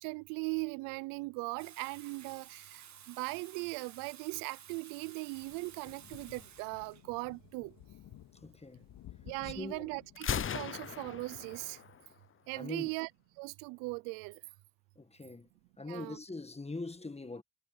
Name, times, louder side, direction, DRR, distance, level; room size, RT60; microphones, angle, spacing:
voice 1, 0.0-7.7 9.3-11.8 12.5-13.1 13.4-14.4 15.9-16.2, right 27 dB, 85° right, 0.6 m, -39 dB
Water tap faucet / Sink (filling or washing), 1.6-9.2, right 9 dB, 55° right, 1.7 m, -54 dB
sound 1, 5.4-10.9, left 13 dB, 70° left, 2.8 m, -55 dB
voice 2, 8.3-8.8 9.4-10.0 12.5-12.9 15.0-15.5 15.8-17.4, left 3 dB, 20° left, 1.7 m, -43 dB
Gunshot gunfire, 10.2-12.1, left 8 dB, 40° left, 0.8 m, -37 dB
hypercardioid pair, 50°, 33 cm